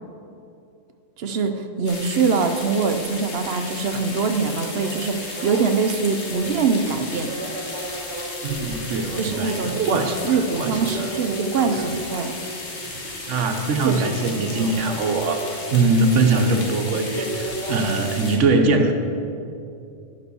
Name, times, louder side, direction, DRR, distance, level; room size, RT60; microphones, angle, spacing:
voice 1, 1.2-7.3 9.2-12.3 13.8-14.7, right 5 dB, 60° right, 6 dB, 0.9 m, -23 dB
sound 1, 1.9-18.4, left 3 dB, 65° left, 1.5 m, -35 dB
sound 2, 4.5-18.1, right 2 dB, 40° right, 1.4 m, -36 dB
voice 2, 8.4-11.1 11.6-11.9 13.3-18.9, right 3 dB, 80° right, 6 dB, 1.2 m, -22 dB
9.7 x 5.2 x 6.9 m, 2.5 s
omnidirectional pair, 1.2 m